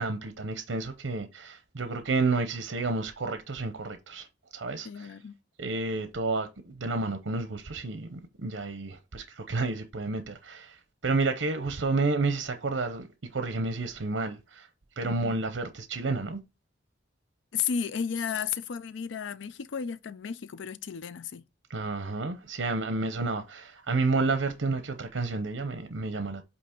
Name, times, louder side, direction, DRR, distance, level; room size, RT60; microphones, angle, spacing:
voice 1, 0.0-4.3 4.5-5.1 5.6-13.1 13.3-14.7 15.0-16.4 21.7-26.4, right 3 dB, 80° right, 0.7 m, -30 dB
voice 2, 4.8-5.3 15.0-15.4 17.5-21.4, left 7 dB, 85° left, 0.4 m, -33 dB
8.4 x 2.8 x 4.4 m
head